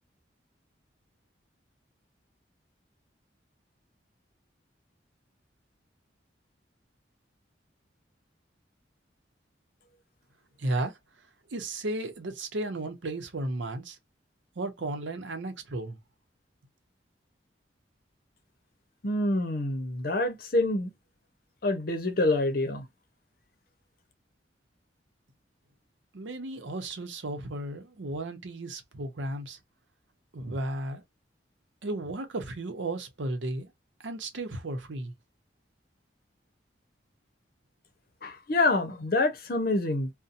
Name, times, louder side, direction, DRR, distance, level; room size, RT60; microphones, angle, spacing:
voice 1, 10.6-11.0 11.5-14.0 14.6-16.0 26.1-29.6 30.3-31.0 31.8-33.7 34.0-35.1, right 2 dB, 80° right, 0.7 m, -34 dB
voice 2, 19.0-20.9 21.6-22.9 38.2-40.1, left 2 dB, 50° left, 0.7 m, -26 dB
2.7 x 2.1 x 2.5 m
head